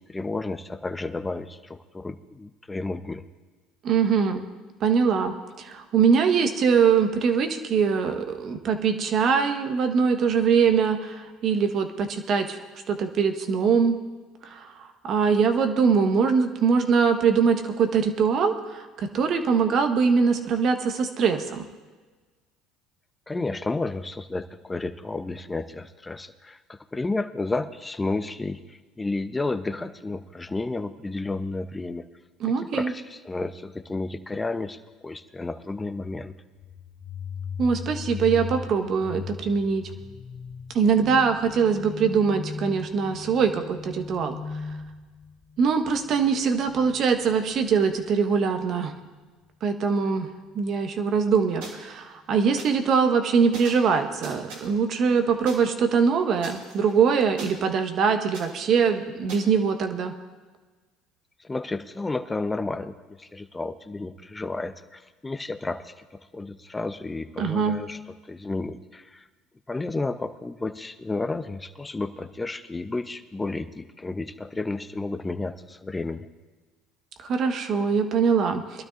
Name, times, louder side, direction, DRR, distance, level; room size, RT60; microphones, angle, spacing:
voice 1, 0.1-3.2 23.3-32.0 32.4-36.3 61.4-68.0 68.3-69.3 69.7-76.3, left 3 dB, 15° left, 11 dB, 0.8 m, -32 dB
voice 2, 3.8-4.4 4.8-13.9 14.4-21.6 32.4-32.9 37.6-39.8 40.7-44.4 45.6-48.9 49.6-50.3 50.5-60.1 67.4-67.8 77.2-78.8, right 6 dB, 50° right, 6 dB, 1.3 m, -23 dB
sound 1, 36.6-48.1, left 5 dB, 45° left, 0.9 m, -38 dB
sound 2, 51.6-51.7 52.6-52.7 53.5-53.9 54.2-54.7 55.5-55.6 56.4-57.5 58.3-58.5 59.3-59.4, right 3 dB, 75° right, 3.4 m, -40 dB
23.0 x 12.5 x 2.6 m, 1.3 s
hypercardioid pair, 75°, 0 cm